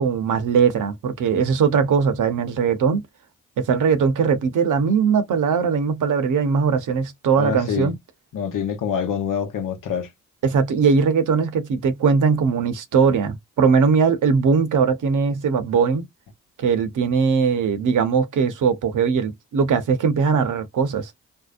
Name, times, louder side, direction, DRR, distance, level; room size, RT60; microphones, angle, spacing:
voice 1, 0.0-3.0 3.6-7.9 10.4-16.1 16.6-21.1, right 5 dB, 70° right, 0.8 m, -20 dB
voice 2, 7.4-7.9 8.3-10.1, left 7 dB, 75° left, 0.9 m, -26 dB
2.7 x 2.1 x 2.4 m
supercardioid pair, 45°, 32 cm